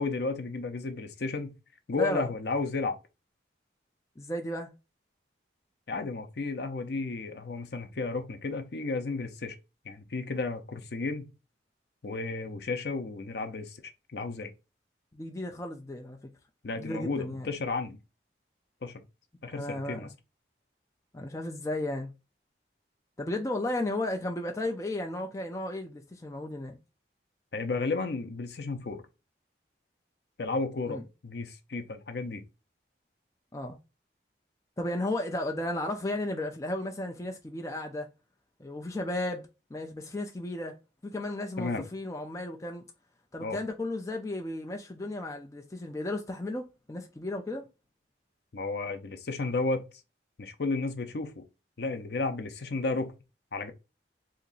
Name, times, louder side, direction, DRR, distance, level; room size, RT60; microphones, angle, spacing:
voice 1, 0.0-1.5 1.9-3.0 5.9-9.6 9.8-11.3 12.0-13.8 14.1-14.5 16.6-18.0 18.8-18.9 19.4-20.1 27.5-29.0 30.4-32.4 41.6-41.8 43.4-43.6 48.5-49.8 50.4-51.4 51.8-53.1 53.5-53.7, left 3 dB, 65° left, 0.6 m, -33 dB
voice 2, 2.0-2.3 4.2-4.7 15.1-16.2 16.8-17.5 19.5-20.1 21.1-22.1 23.2-26.8 30.9-31.0 33.5-33.8 34.8-38.1 38.6-40.8 41.0-42.8 43.3-47.6, left 1 dB, 15° left, 0.4 m, -34 dB
2.9 x 2.5 x 3.9 m
head